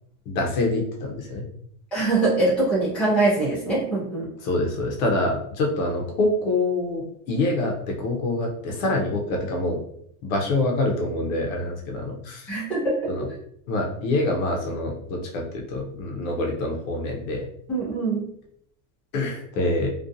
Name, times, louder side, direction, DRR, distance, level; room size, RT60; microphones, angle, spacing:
voice 1, 0.3-1.4 4.4-9.8 10.2-12.5 13.1-13.3 13.7-17.5 19.1-19.9, left 2 dB, 55° left, 1 dB, 0.7 m, -26 dB
voice 2, 1.9-4.3 12.5-13.3 17.7-18.3, right 2 dB, 5° left, -10 dB, 0.4 m, -23 dB
2.4 x 2.3 x 2.6 m, 0.69 s
supercardioid pair, 175°, 47 cm